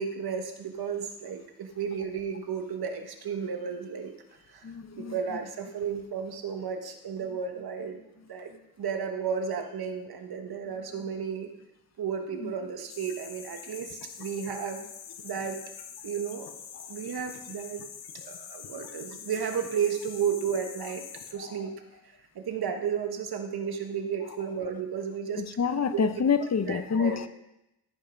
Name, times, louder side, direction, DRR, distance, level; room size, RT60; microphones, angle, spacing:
voice 1, 0.0-4.1 4.5-4.6 5.0-8.0 8.3-8.5 8.8-11.5 12.0-14.9 15.2-15.6 16.0-16.5 16.9-17.8 18.1-21.7 22.3-25.5 25.9-26.0 26.7-27.2, right 7 dB, 75° right, 5 dB, 1.3 m, -33 dB
voice 2, 4.6-5.1 12.3-12.5 16.7-16.9 21.4-21.6 25.3-27.3, left 6 dB, 45° left, 11 dB, 0.8 m, -28 dB
sound 1, 12.9-21.3, left 8 dB, 85° left, 0.9 m, -44 dB
13.5 x 5.7 x 5.2 m, 0.90 s
cardioid pair, 90°, 37 cm